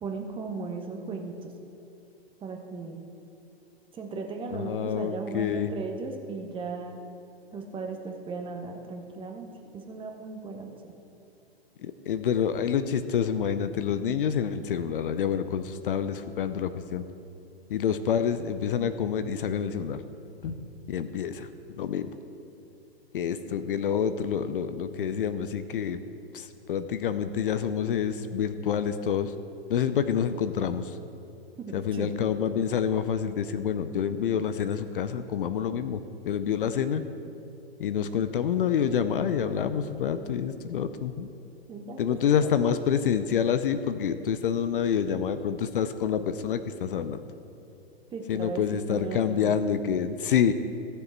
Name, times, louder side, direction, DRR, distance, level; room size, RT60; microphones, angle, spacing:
voice 1, 0.0-1.5 2.4-3.0 3.9-7.0 7.5-9.5 9.7-10.7 20.4-20.5 31.6-32.1 41.7-42.5 48.1-49.6, right 4 dB, 15° right, 3 dB, 1.1 m, -36 dB
voice 2, 4.5-5.7 11.8-17.0 17.7-20.0 20.4-20.5 20.9-21.5 21.8-22.1 23.1-26.0 26.3-29.3 29.7-31.0 31.7-36.0 36.3-37.0 37.8-41.3 42.0-47.2 48.3-50.5, left 8 dB, 60° left, 11 dB, 0.6 m, -27 dB
15.0 x 6.9 x 4.4 m, 2.9 s
figure-of-eight pair, 115°, 31 cm